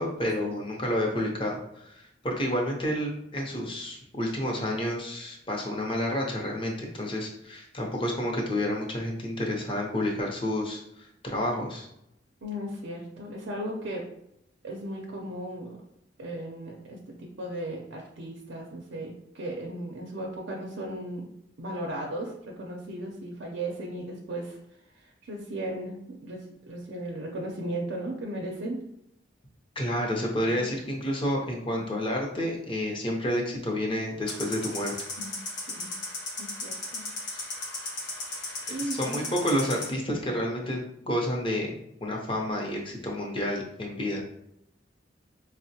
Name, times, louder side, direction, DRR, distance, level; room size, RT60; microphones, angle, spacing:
voice 1, 0.0-1.6 1.8-11.9 29.8-34.9 38.9-40.8 41.1-44.2, left 1 dB, 30° left, -1 dB, 0.7 m, -30 dB
voice 2, 12.4-14.0 14.6-15.8 16.2-21.2 21.6-24.6 24.9-28.8 30.5-30.7 35.2-35.4 35.7-35.9 36.4-37.0 38.7-39.3, right 1 dB, 90° right, -1 dB, 0.5 m, -36 dB
sound 1, 34.3-39.9, left 2 dB, 75° left, 0.9 m, -36 dB
4.3 x 2.1 x 2.7 m, 0.79 s
head